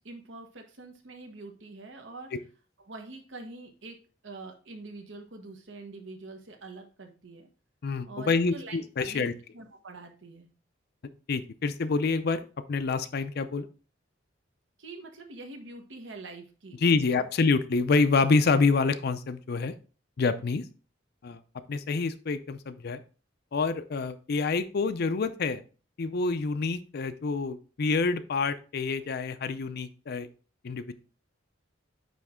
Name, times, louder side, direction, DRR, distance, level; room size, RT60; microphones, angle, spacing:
voice 1, 0.0-2.3 2.8-4.0 4.2-7.5 8.0-8.8 9.0-10.5 14.8-17.2, right 3 dB, 70° right, 4 dB, 1.2 m, -45 dB
voice 2, 7.8-9.3 11.3-12.4 12.7-13.7 16.8-19.7 20.2-20.6 21.2-21.4 21.7-23.0 23.5-25.6 26.0-30.3 30.6-30.9, left 4 dB, 55° left, 11 dB, 0.5 m, -27 dB
9.2 x 3.1 x 3.6 m, 0.37 s
head